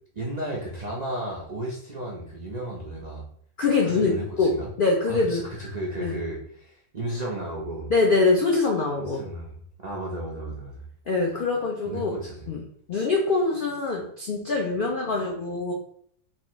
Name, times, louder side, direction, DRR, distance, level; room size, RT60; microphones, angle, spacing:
voice 1, 0.1-3.2 3.8-4.7 5.1-7.9 9.1-10.9 11.9-12.4, right 1 dB, 60° right, -4 dB, 0.4 m, -34 dB
voice 2, 3.6-5.4 6.0-6.2 7.9-9.2 11.1-12.2 12.5-12.6 12.9-15.7, left 3 dB, 70° left, 0 dB, 0.5 m, -24 dB
4.1 x 2.5 x 2.9 m, 0.64 s
omnidirectional pair, 1.6 m